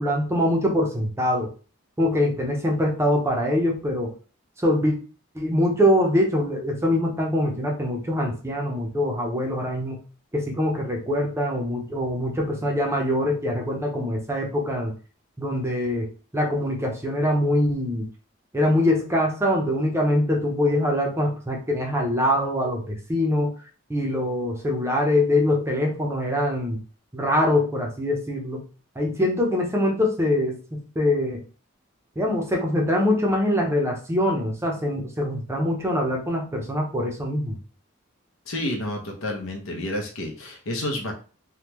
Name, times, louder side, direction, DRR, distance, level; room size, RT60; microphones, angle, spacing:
voice 1, 0.0-1.5 2.0-4.1 4.6-5.0 5.3-10.0 10.3-14.9 15.4-18.1 18.5-23.5 23.9-26.8 27.1-28.6 29.0-31.4 32.2-37.6, left 1 dB, 15° right, 0 dB, 0.6 m, -23 dB
voice 2, 38.5-41.1, left 1 dB, 75° left, 2 dB, 0.8 m, -30 dB
3.5 x 2.2 x 2.9 m, 0.37 s
head